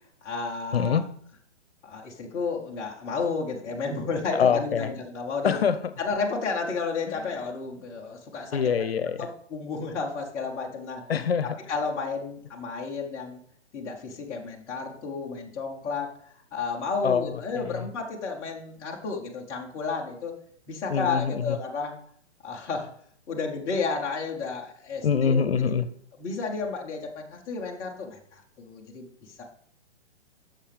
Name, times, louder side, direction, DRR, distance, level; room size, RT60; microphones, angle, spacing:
voice 1, 0.2-1.0 1.8-5.6 6.0-8.6 9.2-11.0 11.7-13.4 13.7-16.1 16.5-20.4 20.7-22.0 22.4-22.9 23.3-25.7 26.2-29.4, left 4 dB, 10° left, -2 dB, 0.5 m, -32 dB
voice 2, 0.7-1.1 4.3-4.9 5.4-5.8 8.5-9.3 11.1-11.5 17.0-17.9 20.9-21.6 25.0-25.9, left 7 dB, 60° left, 13 dB, 0.7 m, -24 dB
9.8 x 6.6 x 3.3 m, 0.62 s
figure-of-eight pair, 125°, 35 cm